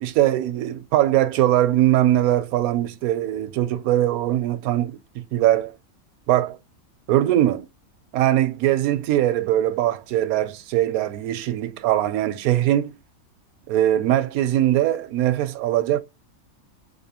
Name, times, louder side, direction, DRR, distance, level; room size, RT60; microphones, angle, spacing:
voice 1, 0.0-5.7 6.3-6.6 7.1-7.7 8.1-12.9 13.7-16.0, right 13 dB, 80° right, 1.0 m, -21 dB
4.1 x 2.7 x 2.7 m
omnidirectional pair, 1.5 m